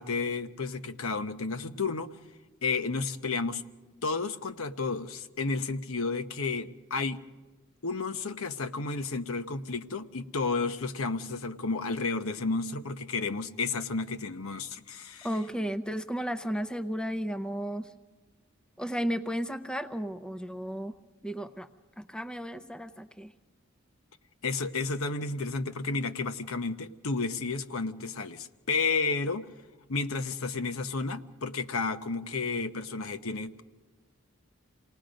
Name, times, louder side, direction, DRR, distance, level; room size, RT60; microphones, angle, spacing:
voice 1, 0.0-2.1 2.6-3.6 4.0-7.2 7.8-15.3 24.4-29.5 29.9-33.6, left 4 dB, 90° left, 8 dB, 1.0 m, -32 dB
voice 2, 15.2-17.9 18.8-20.9 21.2-21.7 22.0-23.3, equal, 5° left, 9 dB, 0.6 m, -33 dB
28.0 x 19.0 x 5.2 m, 1.2 s
head